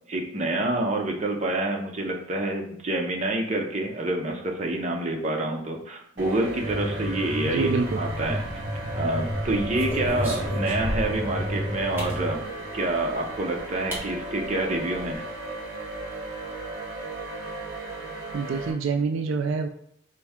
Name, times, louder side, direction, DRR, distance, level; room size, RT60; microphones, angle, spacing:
voice 1, 0.1-8.4 8.9-15.3, right 2 dB, 35° right, 1 dB, 0.6 m, -27 dB
sound 1, 6.2-18.7, right 2 dB, 60° right, 0.9 m, -36 dB
sound 2, 6.6-12.3, equal, 30° left, 0.9 m, -32 dB
voice 2, 7.4-8.0 18.3-19.7, right 4 dB, 75° right, 6 dB, 0.3 m, -26 dB
sound 3, 8.2-8.8 9.3-11.3 12.0-12.2 13.3-13.4 13.9-14.1 14.4-14.5 14.8-15.2, equal, 10° right, 1.0 m, -35 dB
4.5 x 2.6 x 3.5 m, 0.71 s
head